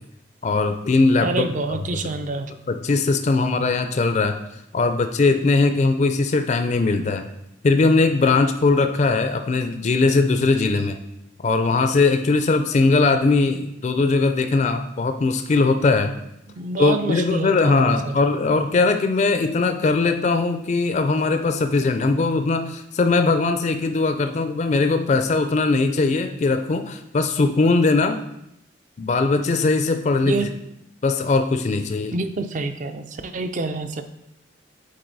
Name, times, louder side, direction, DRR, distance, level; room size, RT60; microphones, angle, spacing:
voice 1, 0.4-1.3 1.9-2.1 2.7-4.4 4.7-7.3 7.6-11.0 11.4-16.1 16.8-28.2 29.0-30.5 31.0-32.1, left 3 dB, 40° left, 7 dB, 0.4 m, -20 dB
voice 2, 1.2-2.5 16.6-18.1 30.2-30.5 32.1-34.0, right 3 dB, 45° right, 9 dB, 0.4 m, -27 dB
7.7 x 4.2 x 4.0 m, 0.82 s
head